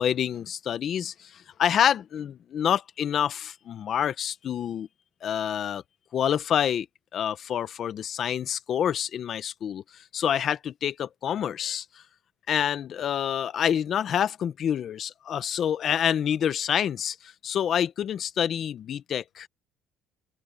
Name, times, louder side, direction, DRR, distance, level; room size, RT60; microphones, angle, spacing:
voice 1, 0.0-4.9 5.2-5.8 6.1-6.9 7.1-11.8 12.5-17.2 17.4-19.5, left 9 dB, 45° left, 0.8 m, -27 dB
cardioid pair, 150°, 0 cm